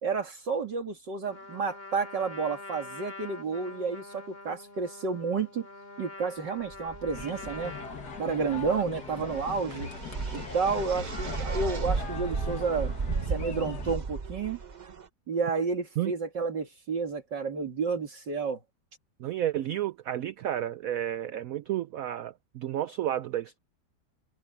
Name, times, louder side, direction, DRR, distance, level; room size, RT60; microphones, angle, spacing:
voice 1, 0.0-5.7 6.0-7.7 8.2-9.9 10.3-12.9 13.3-14.6 15.3-18.6, right 5 dB, 65° right, 2.8 m, -31 dB
Trumpet, 1.3-9.4, left 2 dB, 30° left, 3.1 m, -45 dB
sound 1, 6.7-15.0, right 4 dB, 45° right, 0.6 m, -35 dB
sound 2, 7.1-14.0, left 5 dB, 55° left, 2.5 m, -40 dB
voice 2, 19.2-23.6, right 12 dB, 85° right, 0.7 m, -31 dB
omnidirectional pair, 2.1 m